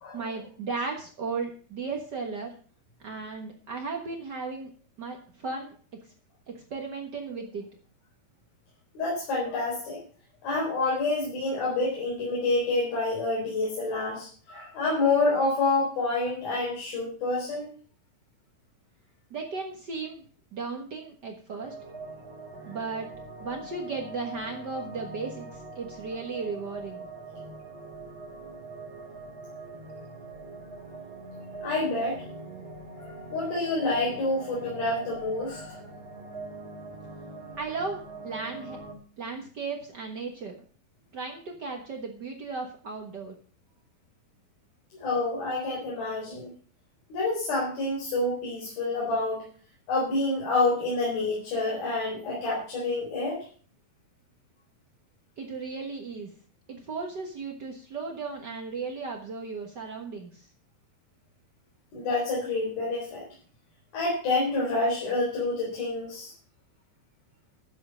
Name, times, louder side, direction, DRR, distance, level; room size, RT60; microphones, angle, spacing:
voice 1, 0.1-2.5 3.0-4.7 5.0-5.7 6.5-7.7 19.3-20.2 20.5-21.7 22.6-23.1 23.4-27.0 37.6-38.8 39.2-40.6 41.1-43.3 55.4-56.3 56.7-60.5, right 4 dB, 80° right, 2 dB, 0.9 m, -35 dB
voice 2, 9.0-10.0 10.4-17.7 31.6-32.2 32.9-35.7 45.0-46.5 47.1-49.4 49.9-53.4 61.9-63.2 63.9-66.3, left 2 dB, 80° left, -3 dB, 5.8 m, -28 dB
sound 1, 21.6-38.9, right 2 dB, 30° right, 3.7 m, -42 dB
12.0 x 7.9 x 6.3 m, 0.43 s
omnidirectional pair, 4.3 m